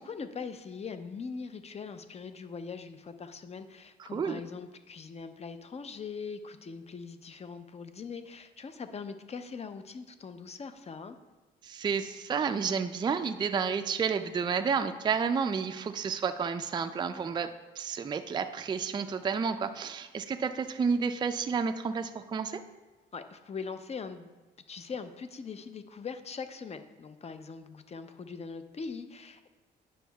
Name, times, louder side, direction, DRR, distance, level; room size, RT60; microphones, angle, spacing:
voice 1, 0.0-11.2 23.1-24.4 24.7-29.5, left 5 dB, 30° left, 9 dB, 0.6 m, -41 dB
voice 2, 4.0-4.4 11.6-22.6, right 6 dB, 20° right, 9 dB, 0.3 m, -31 dB
9.9 x 6.2 x 2.3 m, 1.2 s
cardioid pair, 90°, 20 cm